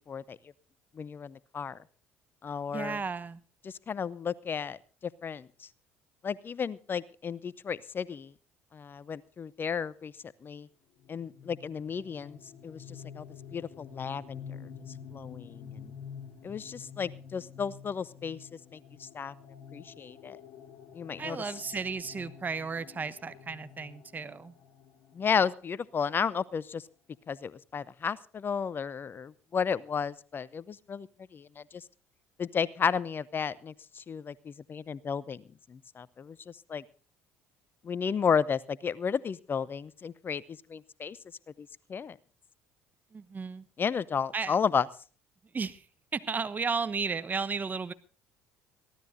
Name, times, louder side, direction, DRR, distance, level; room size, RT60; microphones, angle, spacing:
voice 1, 0.1-0.4 1.0-1.8 2.4-3.0 3.6-4.8 5.2-5.7 6.2-8.3 8.7-10.1 10.4-10.7 11.1-13.2 13.5-14.6 15.1-15.9 16.4-18.4 18.7-19.3 19.7-20.4 20.9-21.4 25.1-26.8 27.3-31.1 31.3-31.8 32.4-35.4 35.7-36.8 37.8-41.2 41.6-42.2 43.8-44.9, left 6 dB, 35° left, 21 dB, 0.7 m, -33 dB
voice 2, 2.7-3.4 21.2-24.5 43.1-43.7 44.3-44.5 45.5-45.9 46.1-47.9, right 5 dB, 30° right, 14 dB, 1.1 m, -34 dB
sound 1, 11.0-26.6, left 7 dB, 55° left, 3.9 m, -49 dB
22.5 x 16.0 x 2.7 m, 0.37 s
hypercardioid pair, 60°, 6 cm